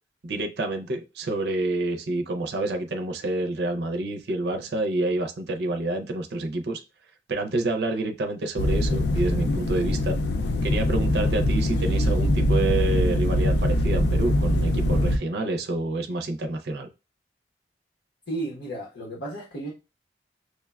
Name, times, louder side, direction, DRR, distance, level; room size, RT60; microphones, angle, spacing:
voice 1, 0.2-6.8 7.3-10.2 10.6-16.9, right 2 dB, 60° right, 0.5 m, -28 dB
sound 1, 8.6-15.2, left 1 dB, 65° left, 0.4 m, -23 dB
voice 2, 18.3-19.7, right 2 dB, 80° left, 1.0 m, -33 dB
6.3 x 2.2 x 2.3 m
head